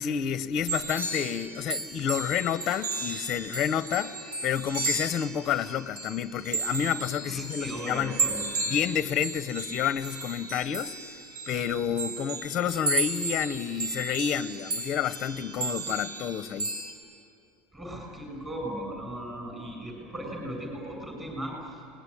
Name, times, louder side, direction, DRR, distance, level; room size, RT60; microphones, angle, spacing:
voice 1, 0.0-4.1 4.4-8.2 8.7-11.0 11.5-16.7, left 9 dB, 30° left, 13 dB, 0.7 m, -29 dB
sound 1, 0.7-16.9, right 3 dB, 75° right, 3.8 m, -34 dB
voice 2, 7.3-8.4 17.7-21.6, right 1 dB, 15° right, 0 dB, 6.9 m, -37 dB
27.0 x 20.5 x 9.9 m, 2.6 s
supercardioid pair, 170°, 0 cm